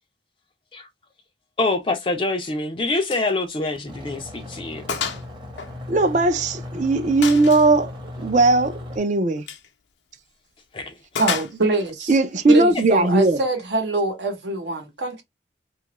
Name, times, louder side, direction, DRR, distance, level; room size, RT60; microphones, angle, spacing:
voice 1, 1.6-4.9 10.7-10.9, left 2 dB, 30° left, 0.4 m, -25 dB
Gunshot gunfire, 3.1-3.3 3.6-3.8 4.2-4.3 4.9-5.3 5.6-6.5 7.2-7.7 9.4-9.7 11.1-11.9, left 6 dB, 85° left, 0.6 m, -30 dB
sound 1, 3.9-9.0, left 1 dB, 25° right, 0.8 m, -37 dB
voice 2, 5.9-7.9 8.2-9.5 12.1-13.4, right 2 dB, 40° right, 0.4 m, -18 dB
voice 3, 11.2-12.1 12.5-15.2, right 2 dB, 75° right, 0.9 m, -24 dB
2.9 x 2.4 x 2.9 m
head